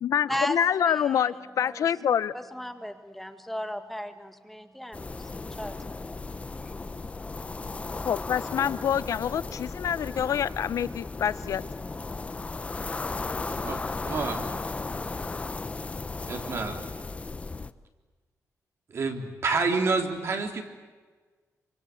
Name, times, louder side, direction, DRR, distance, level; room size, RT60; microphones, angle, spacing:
voice 1, 0.0-2.3 8.0-11.6, left 9 dB, 70° left, 16 dB, 0.8 m, -26 dB
voice 2, 0.8-1.3 1.6-1.8 2.5-5.3 5.6-6.8, equal, 5° left, 7 dB, 1.7 m, -36 dB
sound 1, 4.9-17.7, left 3 dB, 20° left, 0.8 m, -35 dB
voice 3, 13.6-14.5 16.3-16.9 18.9-20.6, right 4 dB, 50° right, 4 dB, 3.4 m, -28 dB
26.5 x 25.0 x 8.5 m, 1.4 s
wide cardioid pair, 145°, 6 cm